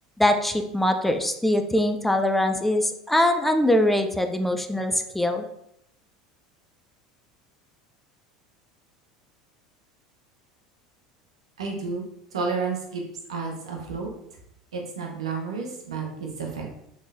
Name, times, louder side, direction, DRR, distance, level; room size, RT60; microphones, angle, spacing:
voice 1, 0.2-5.4, left 1 dB, 5° left, 6 dB, 0.4 m, -22 dB
voice 2, 11.6-12.0 12.3-13.0 13.3-14.1 14.7-16.7, right 4 dB, 80° right, 1 dB, 0.7 m, -31 dB
3.6 x 3.1 x 2.5 m, 0.78 s
hypercardioid pair, 75°, 3 cm